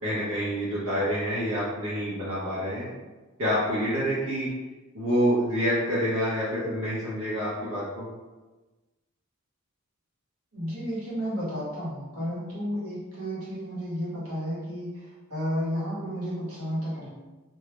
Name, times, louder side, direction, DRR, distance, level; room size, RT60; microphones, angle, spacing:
voice 1, 0.0-2.9 3.4-4.5 4.9-8.1, equal, 70° right, -10 dB, 0.6 m, -27 dB
voice 2, 10.5-17.1, equal, 85° right, -7 dB, 1.0 m, -32 dB
2.2 x 2.0 x 2.9 m, 1.2 s
head